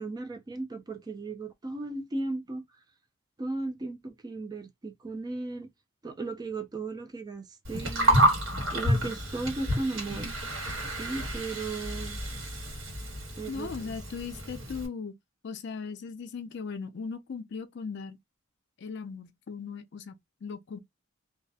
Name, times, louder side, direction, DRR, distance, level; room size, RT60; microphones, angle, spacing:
voice 1, 0.0-2.7 3.4-5.7 6.0-8.2 8.7-10.3 10.9-12.2 13.4-14.0, right 3 dB, 20° right, 0.3 m, -36 dB
Gurgling, 7.6-14.9, right 1 dB, 70° right, 1.2 m, -29 dB
voice 2, 13.5-15.1 15.4-18.2 18.8-20.2 20.4-20.8, left 5 dB, 55° left, 0.4 m, -38 dB
2.3 x 2.1 x 2.6 m
head